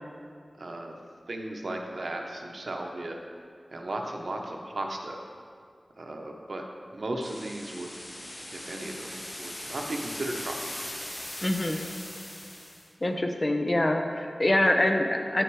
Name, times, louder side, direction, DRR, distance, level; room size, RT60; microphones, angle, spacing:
voice 1, 0.6-0.9 1.3-3.2 3.7-5.2 6.0-6.6 6.9-7.9 8.5-10.7, right 1 dB, 70° right, 2 dB, 0.9 m, -35 dB
air buildup, 7.2-12.9, left 1 dB, 55° left, 1.4 m, -40 dB
voice 2, 11.4-11.8 13.0-15.4, left 1 dB, 40° left, 4 dB, 0.7 m, -25 dB
8.7 x 6.1 x 4.7 m, 2.1 s
wide cardioid pair, 60°, 0 cm